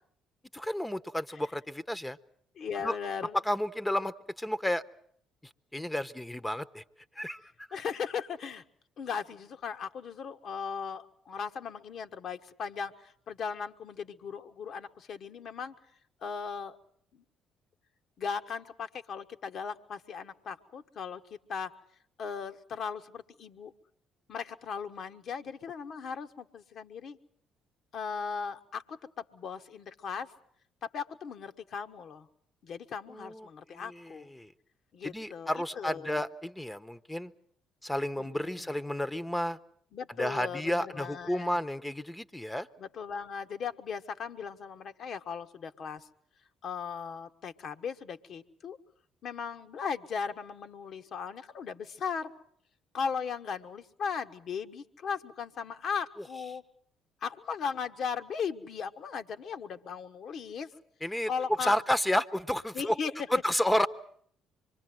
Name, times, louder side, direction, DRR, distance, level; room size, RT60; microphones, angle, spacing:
voice 1, 0.5-2.2 2.8-3.0 3.3-4.8 5.7-6.8 7.2-7.5 33.1-34.5 35.0-37.3 37.8-39.6 40.2-42.7 61.0-61.3 61.6-63.0 63.3-63.9, left 1 dB, 10° left, 13 dB, 1.0 m, -31 dB
voice 2, 2.6-3.4 7.7-8.6 9.0-15.7 16.2-16.8 17.1-17.2 18.2-21.7 22.2-23.7 24.3-27.2 27.9-30.3 30.9-32.3 32.6-34.3 34.9-36.2 38.2-38.7 39.9-41.6 42.8-46.0 46.6-48.8 49.2-52.3 52.9-56.6 57.2-60.7 61.3-61.8 62.7-63.1, left 6 dB, 55° left, 7 dB, 1.4 m, -37 dB
25.5 x 22.5 x 7.8 m, 0.64 s
hypercardioid pair, 50°, 0 cm